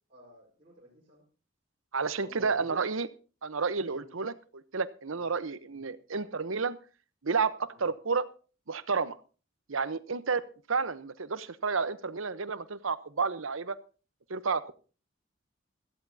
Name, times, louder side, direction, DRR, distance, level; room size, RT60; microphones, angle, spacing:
voice 1, 0.1-1.2 2.2-2.9 3.9-4.1 5.7-5.8 7.7-7.9, equal, 30° right, -5 dB, 4.6 m, -50 dB
voice 2, 1.9-3.1 3.4-6.8 7.2-8.3 8.7-9.2 9.7-13.8 14.3-14.7, right 4 dB, 80° right, 13 dB, 0.9 m, -31 dB
17.0 x 14.0 x 2.8 m, 0.35 s
head